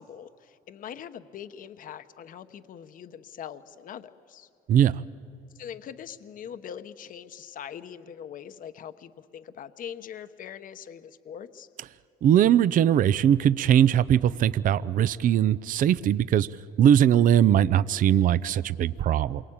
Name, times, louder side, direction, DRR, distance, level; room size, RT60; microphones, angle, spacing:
voice 1, 0.0-4.5 5.5-11.7, left 9 dB, 55° left, 10 dB, 1.0 m, -42 dB
voice 2, 4.7-5.0 12.2-16.5 16.8-19.4, right 10 dB, 55° right, 16 dB, 0.6 m, -20 dB
28.0 x 23.5 x 8.7 m, 2.7 s
cardioid pair, 110°, 17 cm